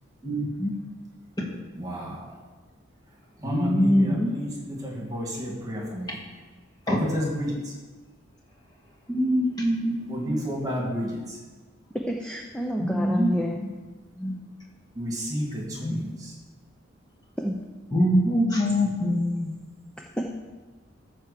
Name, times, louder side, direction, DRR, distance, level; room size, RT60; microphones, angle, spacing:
voice 1, 0.2-0.7 3.4-4.3 6.9-7.0 9.1-10.1 12.8-13.3 13.6-13.7 14.2-14.4 15.8-16.0 17.9-19.5, equal, 20° left, -3 dB, 1.8 m, -24 dB
voice 2, 1.7-2.4 3.4-6.2 6.8-7.7 10.1-11.4 14.9-16.3, equal, 20° right, -2 dB, 2.2 m, -31 dB
voice 3, 11.9-13.6 17.4-17.6 20.2-20.3, equal, 5° left, 0 dB, 0.6 m, -28 dB
13.5 x 4.7 x 6.7 m, 1.3 s
head